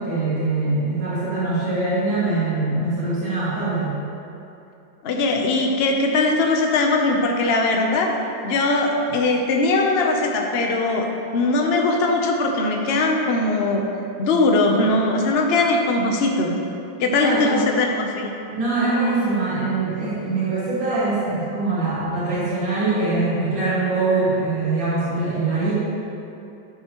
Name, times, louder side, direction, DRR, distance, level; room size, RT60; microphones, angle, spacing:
voice 1, 0.0-4.0 17.2-17.7 18.5-25.7, right 3 dB, 90° right, -10 dB, 2.8 m, -23 dB
voice 2, 5.0-8.1 8.4-13.8 14.2-16.6 17.0-18.3, left 2 dB, 60° left, 2 dB, 0.6 m, -20 dB
11.0 x 6.7 x 3.0 m, 2.8 s
omnidirectional pair, 2.0 m